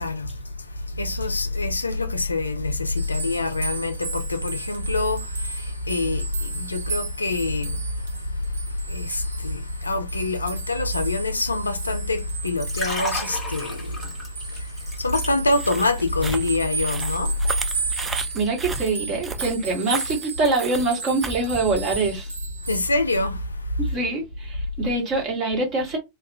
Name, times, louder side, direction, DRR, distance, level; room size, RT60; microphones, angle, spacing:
voice 1, 0.0-18.1 22.6-23.8, left 2 dB, 80° left, 0.3 m, -26 dB
sound 1, 2.9-22.8, right 4 dB, 70° right, 0.5 m, -35 dB
Liquid, 12.4-15.8 16.1-16.4, left 1 dB, 15° left, 1.1 m, -33 dB
sound 2, 15.5-22.2, right 4 dB, 15° right, 0.3 m, -35 dB
voice 2, 18.0-22.3 23.8-26.0, right 3 dB, 35° right, 1.1 m, -25 dB
2.3 x 2.0 x 2.6 m
figure-of-eight pair, 90°, 0 cm